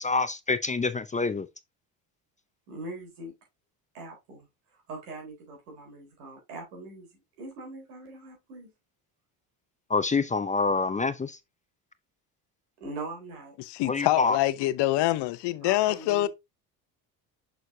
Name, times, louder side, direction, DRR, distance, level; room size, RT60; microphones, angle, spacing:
voice 1, 0.0-1.5 9.9-11.4 13.9-14.4, left 4 dB, 15° left, 0.5 m, -26 dB
voice 2, 2.7-3.3 3.9-4.5 4.9-8.7 12.8-13.6 15.6-16.3, right 2 dB, 90° right, 4.1 m, -41 dB
voice 3, 13.6-16.3, left 16 dB, 65° left, 0.8 m, -25 dB
6.6 x 6.4 x 2.7 m
supercardioid pair, 80°, 45 cm